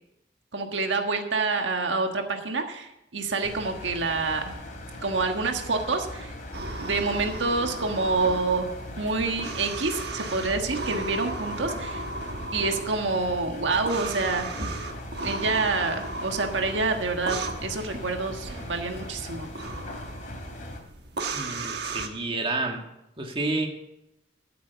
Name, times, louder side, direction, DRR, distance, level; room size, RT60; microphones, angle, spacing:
voice 1, 0.5-4.5 5.0-6.3 6.8-8.7 9.0-12.0 12.5-14.5 15.2-19.5, right 3 dB, 90° right, 4 dB, 1.5 m, -27 dB
Engine, 3.4-20.8, left 1 dB, 45° left, 2.7 m, -40 dB
sound 1, 6.5-22.1, right 2 dB, 65° right, 1.4 m, -36 dB
voice 2, 21.3-22.8 23.2-23.7, right 2 dB, 30° right, 2 dB, 1.7 m, -29 dB
12.5 x 8.8 x 7.0 m, 0.88 s
head